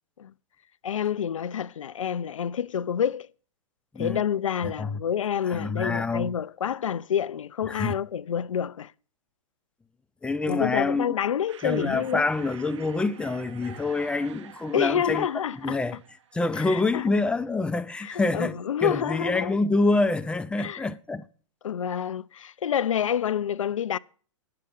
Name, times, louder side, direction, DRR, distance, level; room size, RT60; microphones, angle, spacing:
voice 1, 0.8-3.3 4.0-8.9 10.5-12.3 14.7-15.8 16.5-17.1 18.0-19.5 20.6-20.9 21.6-24.0, left 9 dB, 80° left, 0.4 m, -28 dB
voice 2, 4.6-5.0 5.5-6.3 7.7-7.9 10.2-11.1 11.6-15.3 15.6-16.0 16.3-21.2, left 3 dB, 5° left, 0.4 m, -26 dB
sound 1, 11.5-17.0, right 8 dB, 65° right, 0.8 m, -48 dB
9.7 x 6.7 x 7.6 m
hypercardioid pair, 110°, 17 cm